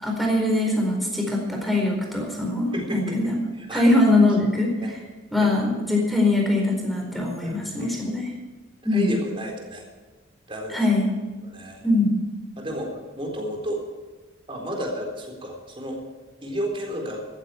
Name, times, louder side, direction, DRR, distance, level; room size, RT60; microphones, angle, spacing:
voice 1, 0.0-3.4 3.7-4.7 5.3-8.3 8.8-9.1 10.7-11.1 11.8-12.2, left 2 dB, ahead, 0 dB, 4.4 m, -22 dB
voice 2, 2.7-3.8 4.8-4.9 5.4-5.5 7.4-7.9 8.9-9.8 10.5-10.8 11.5-11.8 12.6-13.8 14.5-16.0 16.4-17.2, equal, 25° right, 1 dB, 3.9 m, -32 dB
15.0 x 14.5 x 4.5 m, 1.3 s
head